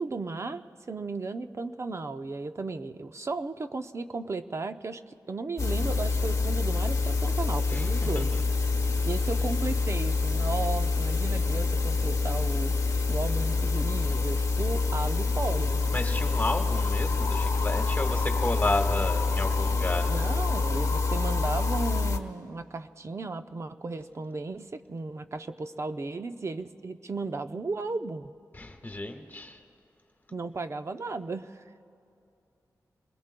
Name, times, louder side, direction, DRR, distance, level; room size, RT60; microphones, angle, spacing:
voice 1, 0.0-8.3 9.1-12.7 13.1-16.0 20.1-28.3 30.3-31.8, right 3 dB, 40° right, 9 dB, 0.6 m, -35 dB
sound 1, 5.6-22.2, left 3 dB, 45° left, 1.1 m, -26 dB
voice 2, 15.9-20.4 28.5-29.6, left 2 dB, 25° left, 3 dB, 1.5 m, -32 dB
28.5 x 21.0 x 2.2 m, 2.7 s
wide cardioid pair, 90°, 7 cm